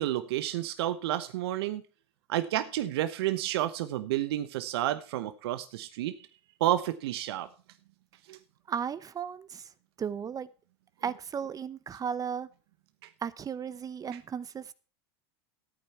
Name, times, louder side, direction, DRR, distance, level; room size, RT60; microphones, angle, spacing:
voice 1, 0.0-1.8 2.3-6.1 6.6-7.5 8.3-8.4 13.0-13.1, right 13 dB, 70° right, 11 dB, 1.0 m, -30 dB
voice 2, 8.7-9.7 10.0-10.5 11.0-12.5 13.2-14.7, right 7 dB, 25° right, 16 dB, 0.8 m, -35 dB
14.0 x 9.0 x 4.3 m, 0.36 s
hypercardioid pair, 95°, 14 cm